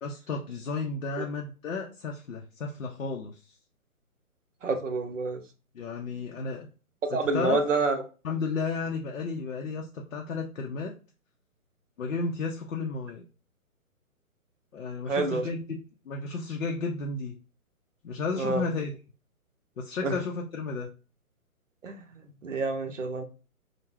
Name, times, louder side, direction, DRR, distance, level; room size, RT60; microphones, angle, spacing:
voice 1, 0.0-3.4 5.7-6.7 7.1-7.6 8.2-10.9 12.0-13.2 14.7-15.8 16.1-17.3 18.0-18.9 19.8-20.9, left 4 dB, 65° left, 1 dB, 0.6 m, -33 dB
voice 2, 4.6-5.4 7.0-8.0 15.1-15.4 18.4-18.6 20.0-20.1 21.8-22.0 22.4-23.2, right 3 dB, 60° right, 7 dB, 0.6 m, -28 dB
2.4 x 2.1 x 3.2 m, 0.36 s
figure-of-eight pair, 135°, 44 cm